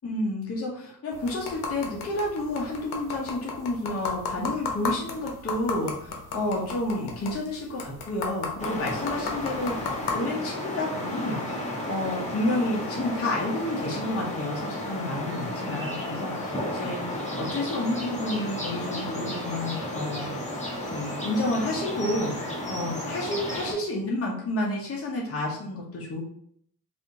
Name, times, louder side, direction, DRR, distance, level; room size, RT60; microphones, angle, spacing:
voice 1, 0.0-20.4 20.9-22.3 22.7-26.2, left 1 dB, 35° left, -3 dB, 0.8 m, -30 dB
sound 1, 1.1-10.1, left 5 dB, 85° left, 0.7 m, -35 dB
sound 2, 8.6-23.7, left 1 dB, 20° left, 1.1 m, -33 dB
3.3 x 2.5 x 2.7 m, 0.65 s
cardioid pair, 90°, 39 cm